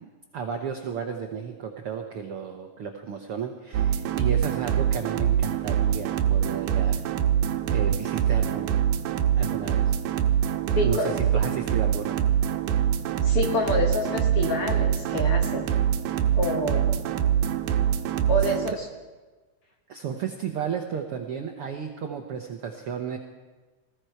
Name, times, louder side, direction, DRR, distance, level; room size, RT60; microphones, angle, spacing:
voice 1, 0.0-7.0 7.7-8.8 9.3-9.9 10.8-12.2 19.9-23.2, right 7 dB, 70° right, 3 dB, 1.3 m, -33 dB
sound 1, 3.7-18.7, right 9 dB, 85° right, 2.6 m, -24 dB
voice 2, 10.8-11.2 13.2-15.8 16.3-16.9 18.3-18.9, left 2 dB, 55° left, 2 dB, 1.8 m, -27 dB
20.0 x 15.0 x 4.6 m, 1.3 s
omnidirectional pair, 3.8 m